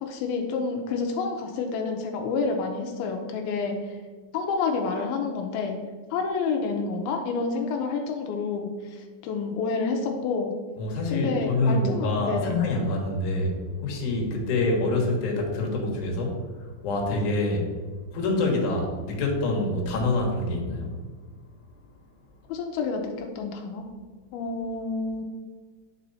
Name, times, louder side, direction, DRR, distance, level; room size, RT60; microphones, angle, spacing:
voice 1, 0.0-4.0 4.3-5.8 6.1-10.5 11.1-12.6 22.5-23.8 24.3-25.3, left 4 dB, 90° left, 2 dB, 2.6 m, -29 dB
voice 2, 10.8-17.7 18.1-20.9, left 2 dB, 65° left, -1 dB, 2.6 m, -26 dB
9.6 x 4.4 x 4.1 m, 1.4 s
omnidirectional pair, 4.2 m